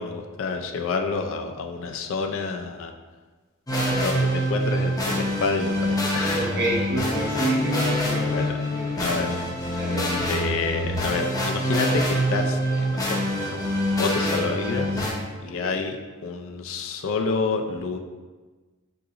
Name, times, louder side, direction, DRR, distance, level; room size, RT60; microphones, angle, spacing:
voice 1, 0.0-2.9 3.9-6.7 8.2-8.6 9.0-9.3 10.3-15.0 15.4-18.0, left 4 dB, 65° left, 5 dB, 0.3 m, -29 dB
sound 1, 3.7-15.1, equal, 15° left, 0.6 m, -25 dB
voice 2, 6.4-9.1 9.7-10.3 15.5-15.7, right 2 dB, 55° right, -3 dB, 0.7 m, -29 dB
3.8 x 2.8 x 2.4 m, 1.3 s
head